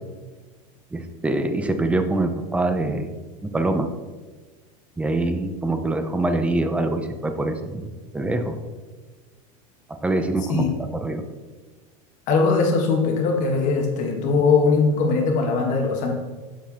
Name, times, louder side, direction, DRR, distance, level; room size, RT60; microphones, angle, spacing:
voice 1, 0.9-3.1 3.4-3.9 5.0-7.9 8.1-8.6 10.0-10.7 11.0-11.2, right 2 dB, 5° right, 7 dB, 0.6 m, -24 dB
voice 2, 12.3-16.1, left 4 dB, 45° left, 1 dB, 1.8 m, -20 dB
7.3 x 6.9 x 3.6 m, 1.3 s
supercardioid pair, 140°, 18 cm